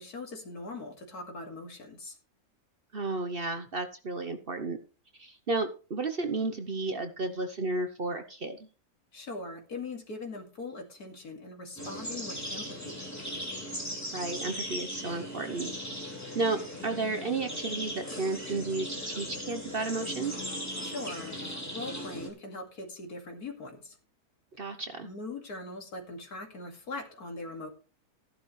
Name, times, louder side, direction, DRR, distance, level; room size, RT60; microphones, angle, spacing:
voice 1, 0.0-2.2 9.1-13.1 20.8-24.0 25.0-27.7, left 2 dB, 75° left, 2 dB, 2.8 m, -41 dB
voice 2, 2.9-4.8 5.2-8.7 14.1-15.7 16.3-20.3 24.6-25.1, right 3 dB, 45° right, 7 dB, 0.9 m, -32 dB
sound 1, 11.8-22.3, equal, 10° left, 3.3 m, -38 dB
14.0 x 10.5 x 3.2 m, 0.35 s
omnidirectional pair, 1.6 m